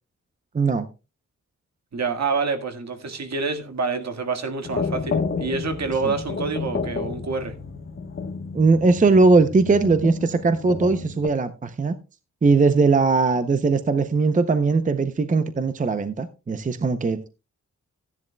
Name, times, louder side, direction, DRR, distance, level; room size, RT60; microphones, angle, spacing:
voice 1, 0.5-0.9 6.0-6.1 8.5-12.0 12.4-17.3, right 4 dB, 25° right, 0.6 m, -20 dB
voice 2, 1.9-7.5, right 4 dB, 65° right, 1.8 m, -27 dB
sound 1, 4.6-11.3, left 5 dB, 45° left, 1.2 m, -31 dB
15.5 x 10.5 x 2.2 m
wide cardioid pair, 175°, 29 cm